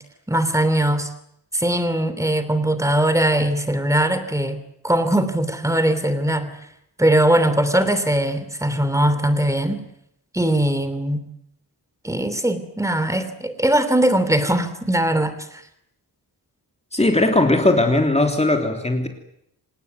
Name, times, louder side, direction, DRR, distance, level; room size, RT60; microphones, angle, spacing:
voice 1, 0.3-1.1 1.5-6.5 7.0-9.9 10.3-11.2 12.0-15.6, right 1 dB, 10° right, 12 dB, 3.0 m, -20 dB
voice 2, 16.9-19.1, left 2 dB, 15° left, 4 dB, 3.2 m, -18 dB
26.5 x 19.0 x 9.5 m, 0.76 s
wide cardioid pair, 125°, 40 cm